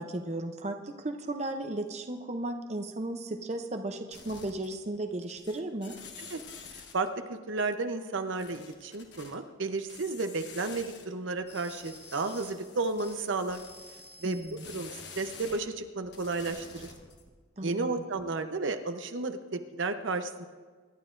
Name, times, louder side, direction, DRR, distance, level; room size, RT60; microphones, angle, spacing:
voice 1, 0.0-6.0 14.2-14.7 17.6-17.9, right 1 dB, 35° right, 5 dB, 0.7 m, -35 dB
sound 1, 4.1-5.0 5.2-7.1 8.3-9.3 9.9-11.0 11.4-15.6 16.0-17.3, left 4 dB, 60° left, 1.4 m, -48 dB
voice 2, 6.9-13.6 14.2-14.4 14.7-16.9 17.6-20.5, right 3 dB, 80° right, 7 dB, 0.8 m, -33 dB
25.0 x 11.0 x 2.6 m, 1.5 s
head